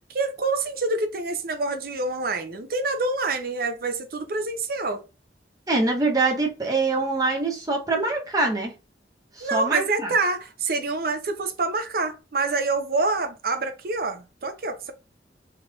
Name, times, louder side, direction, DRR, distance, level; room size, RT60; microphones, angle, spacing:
voice 1, 0.1-5.0 9.4-14.9, right 3 dB, 55° right, 0.6 m, -26 dB
voice 2, 5.7-8.7 9.4-10.1, right 3 dB, 20° right, 0.8 m, -24 dB
3.4 x 3.3 x 2.3 m
head